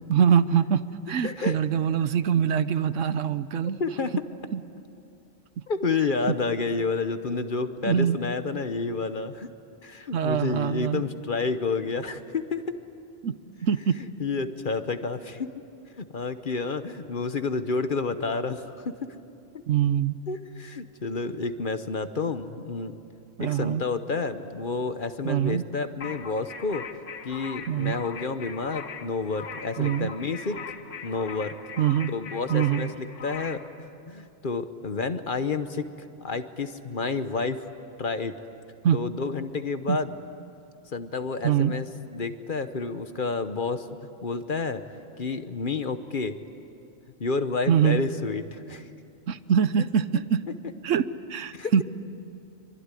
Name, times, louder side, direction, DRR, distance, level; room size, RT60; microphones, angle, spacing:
voice 1, 0.1-3.8 4.5-4.6 7.8-8.2 10.1-11.0 13.2-14.0 19.7-20.2 23.4-23.8 25.2-25.6 27.7-28.0 29.8-30.1 31.8-32.1 32.5-32.9 38.8-39.0 39.9-40.0 41.4-41.7 47.7-48.0 49.3-50.4 50.8-51.8, right 8 dB, 75° right, 14 dB, 1.2 m, -24 dB
voice 2, 1.2-1.6 3.8-4.1 5.7-9.5 9.8-12.8 14.0-15.5 16.0-19.0 20.3-23.0 23.4-26.8 27.2-30.6 31.0-31.5 32.1-35.9 36.2-37.6 38.0-38.3 38.9-40.1 40.9-41.9 42.1-43.9 44.2-44.8 45.2-46.3 47.2-48.9 51.5-51.7, left 4 dB, 45° left, 10 dB, 1.1 m, -30 dB
sound 1, 26.0-33.7, left 6 dB, 75° left, 1.5 m, -40 dB
25.0 x 24.0 x 9.8 m, 2.6 s
omnidirectional pair, 1.3 m